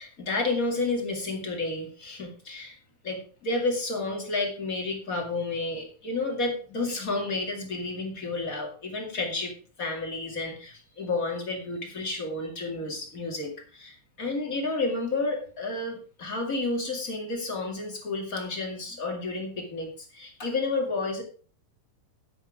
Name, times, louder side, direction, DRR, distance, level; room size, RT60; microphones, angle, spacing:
voice 1, 0.0-2.8 3.0-21.2, left 3 dB, 30° left, 1 dB, 2.1 m, -31 dB
10.5 x 8.1 x 4.8 m, 0.41 s
omnidirectional pair, 3.8 m